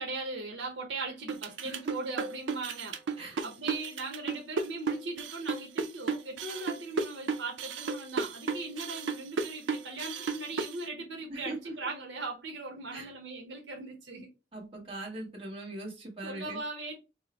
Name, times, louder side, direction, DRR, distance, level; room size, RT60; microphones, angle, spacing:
voice 1, 0.0-14.3 16.2-16.9, right 3 dB, 70° right, 0.9 m, -39 dB
sound 1, 1.3-10.8, right 4 dB, 90° right, 0.5 m, -33 dB
voice 2, 11.3-11.8 12.9-13.1 14.5-16.6, right 2 dB, 30° right, 1.3 m, -40 dB
4.5 x 2.1 x 2.9 m
head